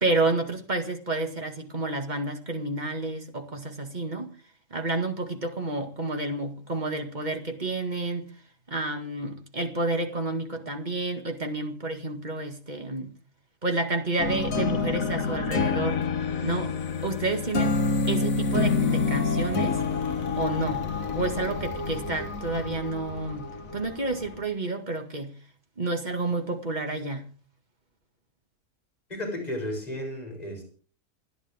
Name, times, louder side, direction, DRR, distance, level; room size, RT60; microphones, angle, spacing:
voice 1, 0.0-4.3 4.7-8.3 8.7-13.1 13.6-16.0 16.4-16.7 17.0-17.8 18.1-19.8 20.4-20.9 21.1-25.3 25.8-27.2, right 2 dB, 30° right, 2.0 m, -30 dB
sound 1, 14.2-24.4, left 4 dB, 60° left, 1.7 m, -28 dB
voice 2, 29.1-30.6, left 1 dB, 25° left, 7.4 m, -33 dB
28.0 x 10.5 x 3.6 m
omnidirectional pair, 1.6 m